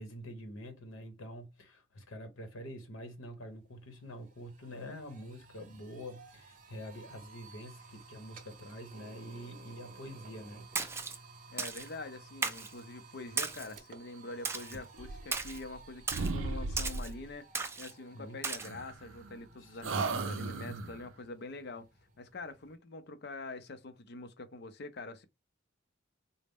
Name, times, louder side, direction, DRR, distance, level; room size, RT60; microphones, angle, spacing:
voice 1, 0.0-10.7 18.1-18.4 19.6-20.2, equal, 85° left, 0.9 m, -46 dB
sound 1, 3.3-3.4 3.7-22.8, right 4 dB, 40° right, 0.6 m, -55 dB
Splash splatter, 10.7-11.2 11.6-11.9 12.4-12.7 13.4-13.7 14.4-14.8 15.3-15.6 16.1-16.3 16.8-17.1 17.5-17.9 18.4-18.7, right 4 dB, 15° right, 0.3 m, -35 dB
voice 2, 11.5-17.5 17.8-21.9 22.2-25.3, left 3 dB, 55° left, 0.5 m, -45 dB
sound 2, 14.9-15.8 16.1-17.3 18.6-19.5 19.8-21.1, right 3 dB, 80° right, 0.5 m, -36 dB
3.9 x 2.1 x 3.5 m
head